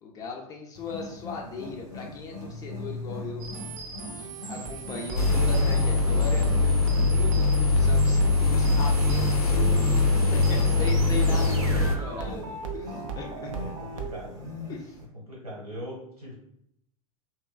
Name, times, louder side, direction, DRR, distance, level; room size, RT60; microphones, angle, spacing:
voice 1, 0.0-3.5 4.2-6.8 7.1-10.0 10.3-13.6 14.7-15.0, left 4 dB, 20° left, 0 dB, 0.3 m, -38 dB
Wild animals, 0.7-15.0, left 1 dB, 20° right, 0.7 m, -41 dB
sound 1, 3.4-14.2, right 5 dB, 60° right, 0.4 m, -37 dB
sound 2, 5.2-12.0, left 3 dB, 85° left, 0.4 m, -22 dB
voice 2, 13.5-14.4 15.3-16.3, equal, 80° right, -4 dB, 1.2 m, -40 dB
3.0 x 2.1 x 2.2 m, 0.73 s
figure-of-eight pair, 95°, 19 cm